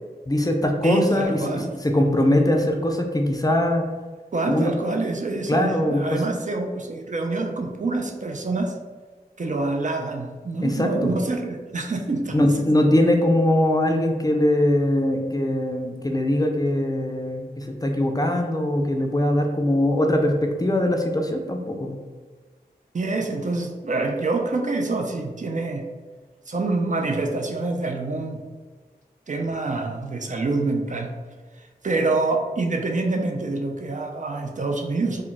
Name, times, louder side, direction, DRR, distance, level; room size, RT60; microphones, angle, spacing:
voice 1, 0.3-3.9 4.5-4.7 5.5-6.2 10.6-11.2 12.3-22.0, left 1 dB, 20° left, 3 dB, 0.4 m, -21 dB
voice 2, 0.8-1.7 4.3-8.7 9.4-12.7 22.9-25.9 26.5-28.4 29.3-31.1 31.6-35.2, right 3 dB, 50° right, 3 dB, 0.4 m, -26 dB
2.2 x 2.0 x 3.8 m, 1.4 s
wide cardioid pair, 45°, 17 cm